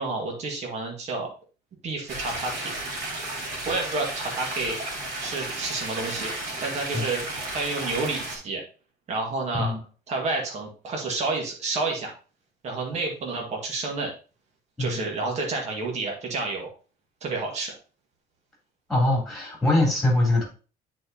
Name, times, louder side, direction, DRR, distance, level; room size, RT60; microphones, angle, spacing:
voice 1, 0.0-1.3 1.8-2.7 3.7-4.8 5.2-6.3 6.6-7.2 7.5-8.6 9.1-9.7 10.1-12.1 12.6-14.1 14.8-16.7 17.2-17.7, right 3 dB, 45° right, 0 dB, 1.8 m, -29 dB
sound 1, 2.1-8.4, right 2 dB, 80° right, 2.8 m, -33 dB
voice 2, 18.9-20.4, left 1 dB, ahead, -3 dB, 3.2 m, -22 dB
9.2 x 4.5 x 2.9 m, 0.35 s
cardioid pair, 145°, 16 cm